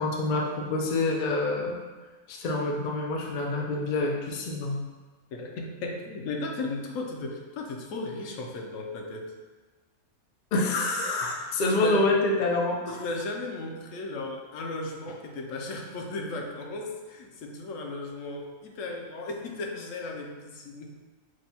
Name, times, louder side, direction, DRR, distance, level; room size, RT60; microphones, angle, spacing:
voice 1, 0.0-1.8 2.3-4.8 10.5-13.0, left 2 dB, 85° left, 0 dB, 0.4 m, -27 dB
voice 2, 5.3-9.3 11.7-12.2 12.9-20.9, left 2 dB, 70° left, 2 dB, 0.9 m, -35 dB
6.1 x 2.2 x 2.8 m, 1.3 s
omnidirectional pair, 1.5 m